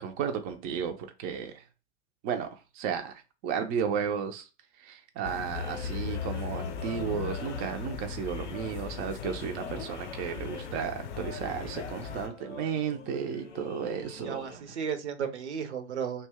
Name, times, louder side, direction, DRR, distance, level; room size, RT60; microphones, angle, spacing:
voice 1, 0.0-1.7 2.2-4.5 4.8-14.6, right 7 dB, 25° right, 0.4 m, -34 dB
sound 1, 5.2-12.3, left 6 dB, 40° left, 0.5 m, -38 dB
sound 2, 5.5-14.6, left 5 dB, 90° left, 0.6 m, -46 dB
voice 2, 14.2-16.3, right 7 dB, 75° right, 0.6 m, -34 dB
2.6 x 2.2 x 3.3 m
figure-of-eight pair, 90°, 34 cm